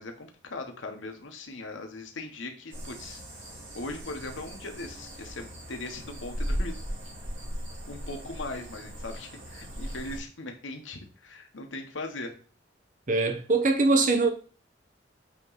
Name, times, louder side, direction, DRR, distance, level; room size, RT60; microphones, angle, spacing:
voice 1, 0.0-3.2 3.7-6.8 7.9-12.3, left 2 dB, 90° left, 1.1 m, -39 dB
sound 1, 2.7-10.2, equal, 90° right, 3.0 m, -37 dB
voice 2, 13.1-14.3, right 3 dB, 45° right, 0.7 m, -22 dB
8.3 x 3.0 x 4.0 m
head